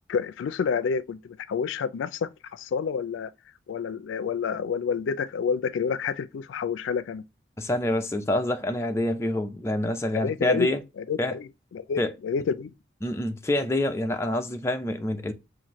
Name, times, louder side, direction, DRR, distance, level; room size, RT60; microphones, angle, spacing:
voice 1, 0.0-3.3 3.7-7.2 10.1-10.7 11.0-12.7, left 6 dB, 90° left, 0.3 m, -29 dB
voice 2, 7.6-10.8 11.2-11.4 12.0-12.1 13.0-15.3, left 1 dB, 15° left, 0.4 m, -26 dB
5.7 x 2.5 x 2.9 m
head